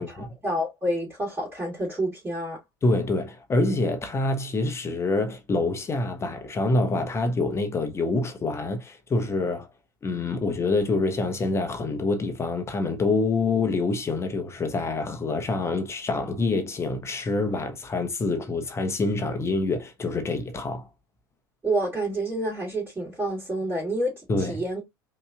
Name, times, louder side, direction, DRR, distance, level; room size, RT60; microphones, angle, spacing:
voice 1, 0.0-2.6 21.6-24.8, right 1 dB, 20° right, 2.9 m, -29 dB
voice 2, 2.8-9.7 10.0-20.9 24.3-24.6, left 3 dB, 25° left, 1.0 m, -26 dB
5.3 x 3.1 x 2.4 m
figure-of-eight pair, 70°, 11 cm